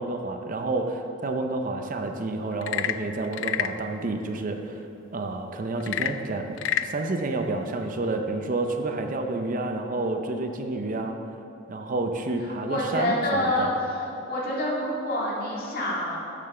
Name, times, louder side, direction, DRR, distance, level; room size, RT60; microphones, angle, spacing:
voice 1, 0.0-4.8 5.1-11.2 11.7-13.7, right 2 dB, 40° right, 5 dB, 0.5 m, -29 dB
Frog / Percussion / Wood, 2.5-3.8 5.8-7.0, left 10 dB, 65° left, 0.3 m, -28 dB
voice 2, 12.6-13.7 14.3-16.2, left 1 dB, 50° left, -5 dB, 2.1 m, -27 dB
6.9 x 6.8 x 6.6 m, 3.0 s
head